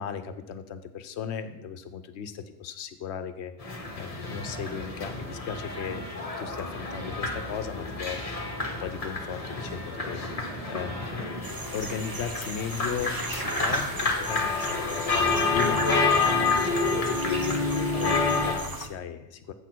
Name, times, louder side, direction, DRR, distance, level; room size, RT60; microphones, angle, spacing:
voice 1, 0.0-11.4 11.7-19.5, left 7 dB, 75° left, 10 dB, 0.9 m, -37 dB
sound 1, 3.6-18.5, left 3 dB, 35° left, 1.1 m, -29 dB
sound 2, 11.4-18.9, right 3 dB, 30° right, 0.4 m, -37 dB
8.1 x 6.0 x 4.5 m, 0.88 s
omnidirectional pair, 1.2 m